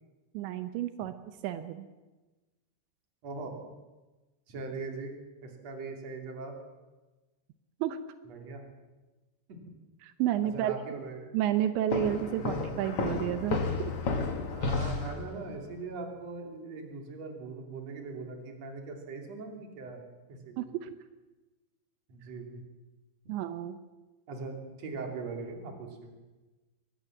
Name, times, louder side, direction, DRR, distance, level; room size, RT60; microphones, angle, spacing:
voice 1, 0.3-1.9 7.8-8.0 10.0-10.7 11.3-13.9 20.6-21.0 23.3-23.8, right 12 dB, 85° right, 10 dB, 3.2 m, -31 dB
voice 2, 3.2-3.6 4.5-5.2 5.4-6.6 8.3-8.6 9.5-9.6 10.5-11.3 12.3-12.6 14.5-20.0 20.3-20.7 22.1-22.6 23.3-23.4 24.3-26.1, right 4 dB, 40° right, 3 dB, 3.6 m, -40 dB
sound 1, 11.9-15.6, left 4 dB, 45° left, 1.9 m, -32 dB
23.0 x 19.0 x 7.3 m, 1.2 s
omnidirectional pair, 5.1 m